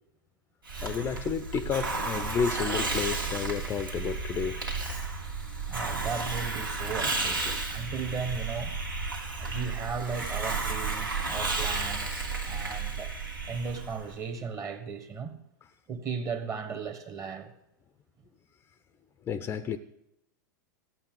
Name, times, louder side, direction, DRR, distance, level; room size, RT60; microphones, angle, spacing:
Hiss, 0.7-14.2, right 3 dB, 75° right, 2.6 m, -32 dB
voice 1, 0.8-4.7 7.4-7.6 19.2-19.8, left 7 dB, 20° left, 0.6 m, -31 dB
voice 2, 5.7-7.4 7.7-8.7 9.4-13.1 13.5-15.3 15.9-17.5, right 5 dB, 30° right, 1.6 m, -36 dB
14.5 x 8.8 x 7.8 m
figure-of-eight pair, 95°, 11 cm